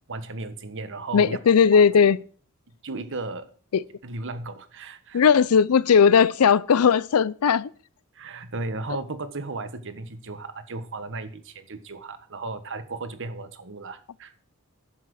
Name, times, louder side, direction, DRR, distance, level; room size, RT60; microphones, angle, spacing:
voice 1, 0.1-1.4 1.7-1.8 2.8-3.5 4.0-5.2 8.1-14.3, right 3 dB, 60° right, 1.3 m, -35 dB
voice 2, 1.1-2.2 3.7-3.8 5.1-7.7, left 6 dB, 85° left, 0.5 m, -18 dB
10.0 x 7.5 x 6.3 m
head